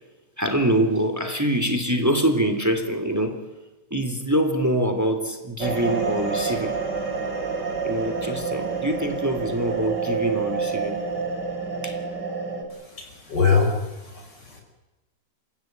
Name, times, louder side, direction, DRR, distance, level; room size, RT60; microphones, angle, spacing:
voice 1, 0.4-3.4 3.9-6.8 7.8-11.0 11.8-12.0, right 1 dB, 10° right, 7 dB, 2.9 m, -24 dB
sound 1, 5.6-12.6, right 5 dB, 80° right, 5.4 m, -28 dB
voice 2, 12.7-14.6, left 5 dB, 80° left, 3 dB, 6.6 m, -24 dB
30.0 x 16.0 x 9.3 m, 1.1 s
omnidirectional pair, 1.9 m